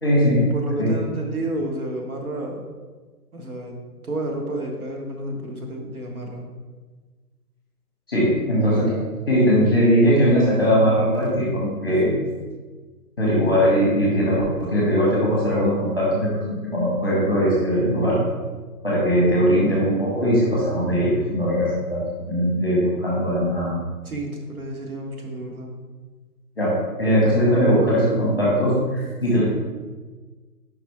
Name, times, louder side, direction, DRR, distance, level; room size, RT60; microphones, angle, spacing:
voice 1, 0.0-0.4 0.8-0.9 8.1-9.0 9.3-12.1 13.2-18.2 18.8-23.7 26.6-29.4, equal, 15° left, -6 dB, 1.0 m, -20 dB
voice 2, 0.5-2.6 3.3-3.8 4.0-6.5 11.9-12.3 24.0-25.7, right 1 dB, 60° right, 1 dB, 1.3 m, -30 dB
5.1 x 4.1 x 4.7 m, 1.3 s
hypercardioid pair, 175°, 48 cm